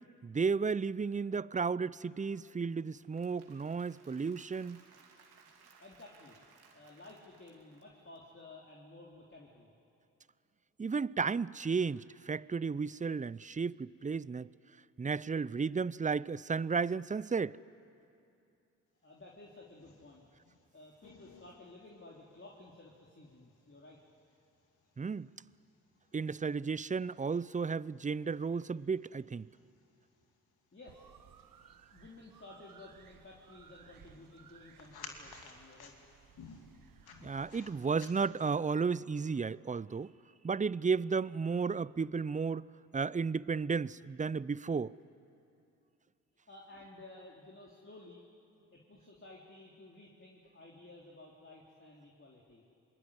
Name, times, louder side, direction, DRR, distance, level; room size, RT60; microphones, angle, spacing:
voice 1, 0.2-4.8 10.8-14.5 15.0-17.6 25.0-25.3 26.1-29.5 37.2-40.1 40.4-42.7 42.9-45.0, right 5 dB, 20° right, 0.6 m, -33 dB
Applause / Crowd, 2.8-8.2, right 5 dB, 75° right, 3.1 m, -63 dB
voice 2, 5.8-6.4 6.7-9.7 19.0-20.2 20.7-24.0 30.7-31.2 31.9-35.9 46.5-48.2 48.7-52.6, left 2 dB, 30° left, 3.8 m, -54 dB
sound 1, 19.2-38.6, left 5 dB, 70° left, 2.8 m, -58 dB
sound 2, 30.9-38.3, right 8 dB, 60° right, 1.2 m, -61 dB
27.0 x 21.0 x 10.0 m
hypercardioid pair, 40°, 38 cm